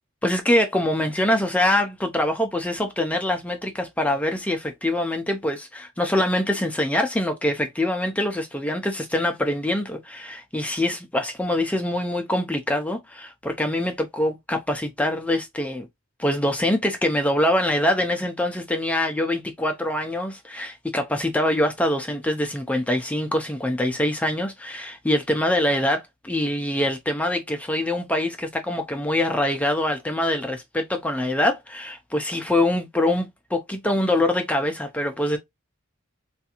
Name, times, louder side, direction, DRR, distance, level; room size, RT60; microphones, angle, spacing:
voice 1, 0.2-15.9 16.2-33.3 33.5-35.4, left 1 dB, 5° left, 0.4 m, -24 dB
3.3 x 2.4 x 2.8 m
head